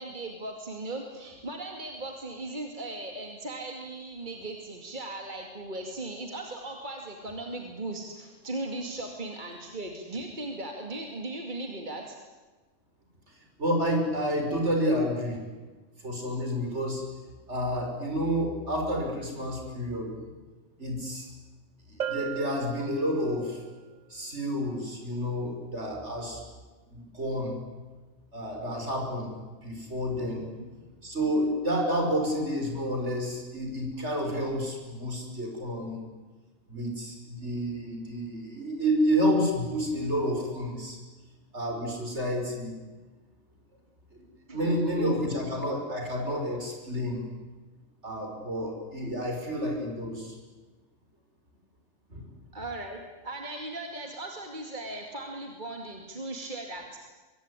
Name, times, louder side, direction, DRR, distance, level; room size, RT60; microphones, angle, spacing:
voice 1, 0.0-12.2 30.3-30.4 44.5-45.2 52.5-57.0, right 2 dB, 40° right, 2 dB, 2.6 m, -38 dB
voice 2, 13.6-15.4 16.0-17.0 17.5-20.1 20.8-21.3 22.0-23.6 24.1-26.4 26.9-27.6 28.3-30.4 31.0-36.0 36.7-41.0 41.5-42.7 44.1-44.2 44.5-47.2 48.0-50.3 52.1-52.4, equal, 65° right, 2 dB, 6.1 m, -30 dB
Bell, 22.0-23.6, right 8 dB, 85° right, 1.4 m, -36 dB
24.0 x 23.5 x 9.9 m, 1.3 s
omnidirectional pair, 1.3 m